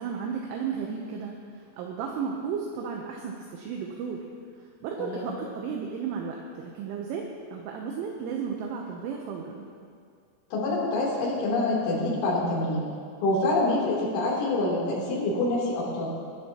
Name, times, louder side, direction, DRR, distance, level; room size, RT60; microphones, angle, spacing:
voice 1, 0.0-1.3 1.8-4.2 4.6-9.7, right 6 dB, 75° right, 0 dB, 3.1 m, -34 dB
voice 2, 5.0-5.3 10.5-12.9 13.2-16.1, left 2 dB, 70° left, -6 dB, 5.7 m, -26 dB
22.0 x 12.5 x 2.9 m, 2.2 s
omnidirectional pair, 6.0 m